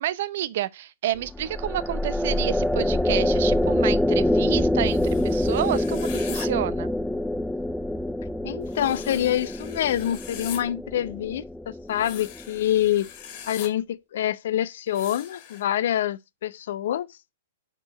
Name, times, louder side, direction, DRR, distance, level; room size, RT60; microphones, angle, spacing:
voice 1, 0.0-6.9, right 13 dB, 60° right, 0.6 m, -29 dB
sound 1, 1.2-12.6, left 1 dB, ahead, 0.4 m, -26 dB
sound 2, 4.8-6.5 8.7-10.6 11.9-13.7 14.9-15.6, left 9 dB, 45° left, 2.2 m, -42 dB
voice 2, 8.4-13.1 13.5-17.2, left 11 dB, 65° left, 0.6 m, -26 dB
6.0 x 4.6 x 6.4 m
hypercardioid pair, 120°, 0 cm